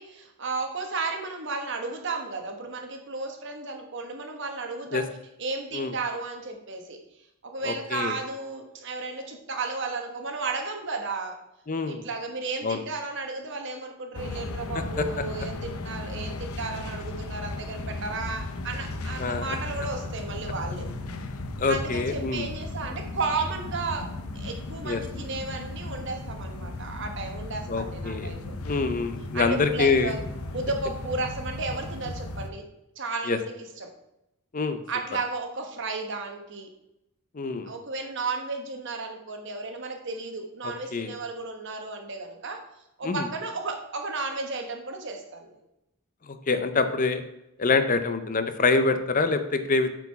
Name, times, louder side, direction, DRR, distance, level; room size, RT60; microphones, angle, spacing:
voice 1, 0.0-5.0 5.4-7.0 7.4-11.4 11.8-20.9 21.7-28.5 29.3-30.2 30.5-32.6 33.0-33.9 34.9-36.7 37.7-42.6 43.0-45.6, right 3 dB, 55° right, 4 dB, 1.2 m, -33 dB
voice 2, 7.6-8.1 11.7-12.0 12.6-12.8 15.0-15.2 19.2-19.6 21.6-22.5 24.8-25.0 27.7-28.3 28.6-30.1 33.3-33.4 34.5-34.8 37.3-37.7 40.6-41.2 43.0-43.3 46.3-47.2 47.6-49.9, left 4 dB, 35° left, 10 dB, 0.5 m, -25 dB
sound 1, 14.1-32.5, left 2 dB, 80° left, 0.7 m, -36 dB
8.0 x 4.6 x 5.6 m, 0.87 s
head